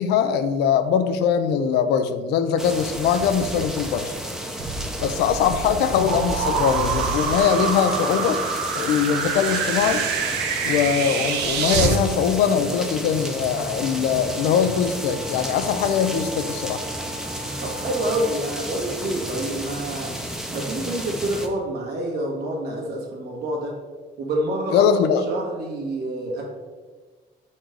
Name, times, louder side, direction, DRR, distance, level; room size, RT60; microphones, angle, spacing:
voice 1, 0.0-4.1 5.0-8.4 8.7-10.0 10.6-16.8 24.7-25.2, left 7 dB, 80° left, 10 dB, 0.5 m, -21 dB
sound 1, 2.6-21.5, equal, 5° right, 0.7 m, -32 dB
sound 2, 4.6-12.0, right 5 dB, 85° right, 0.7 m, -26 dB
Wind instrument woodwind instrument, 13.7-18.5, right 2 dB, 35° right, 1.4 m, -41 dB
voice 2, 17.6-20.1 20.5-23.7 24.2-24.9 25.3-26.5, right 1 dB, 70° right, -1 dB, 1.6 m, -27 dB
5.1 x 4.2 x 4.5 m, 1.4 s
cardioid pair, 110°, 17 cm